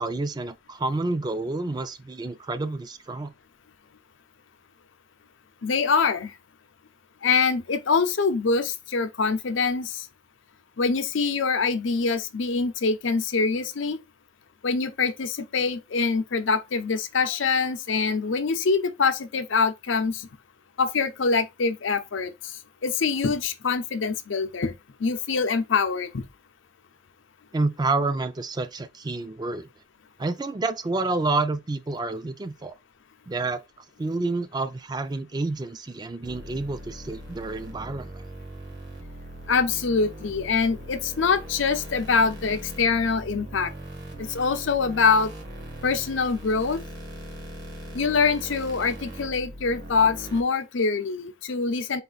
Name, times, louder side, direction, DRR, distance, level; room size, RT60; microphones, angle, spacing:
voice 1, 0.0-3.3 27.5-29.7 30.2-32.7 33.3-33.6 34.0-38.2, right 3 dB, 20° right, 0.4 m, -29 dB
voice 2, 5.6-6.3 7.2-10.1 10.8-14.0 14.6-20.3 20.8-26.2 39.5-43.7 44.2-45.3 45.8-46.8 47.9-52.0, left 4 dB, 85° left, 0.6 m, -24 dB
sound 1, 36.2-50.4, right 1 dB, 60° right, 1.2 m, -40 dB
4.1 x 2.5 x 3.9 m
head